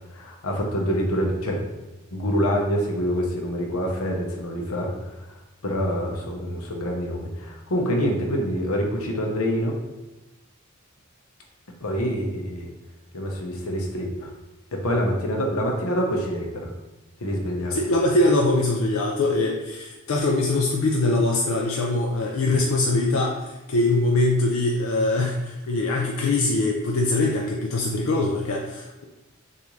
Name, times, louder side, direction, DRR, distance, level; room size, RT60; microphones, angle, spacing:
voice 1, 0.1-1.6 2.1-4.9 5.6-9.8 11.8-12.7 13.1-14.3 14.7-16.7 17.2-17.8, equal, 85° left, 1 dB, 0.9 m, -26 dB
voice 2, 17.7-29.0, left 2 dB, 65° left, 0 dB, 0.5 m, -22 dB
6.6 x 2.6 x 3.1 m, 1.0 s
head